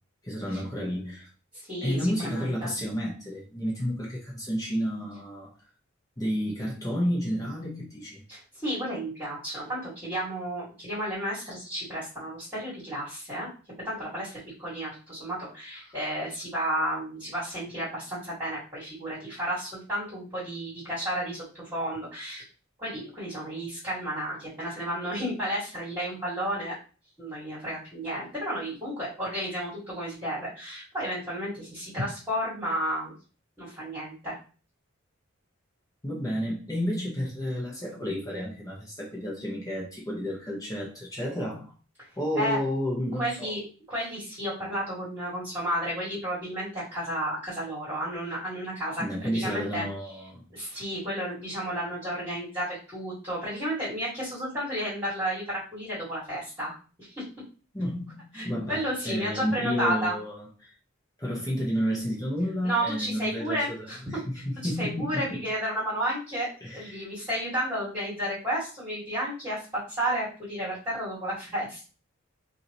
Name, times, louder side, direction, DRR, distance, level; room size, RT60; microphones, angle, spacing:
voice 1, 0.2-1.3 1.8-5.5 6.2-8.2 15.9-16.0 36.0-41.7 42.2-43.5 49.0-50.4 57.7-60.7 61.2-65.4 66.6-67.1, equal, 15° left, -4 dB, 1.2 m, -31 dB
voice 2, 2.2-2.7 8.3-13.5 13.8-22.4 22.8-26.8 27.2-33.1 33.6-34.4 42.4-42.6 43.2-43.6 43.9-49.0 49.3-49.9 50.5-57.2 58.3-60.2 62.6-64.0 64.3-71.8, equal, 15° right, -11 dB, 2.1 m, -32 dB
4.9 x 2.7 x 3.0 m, 0.37 s
head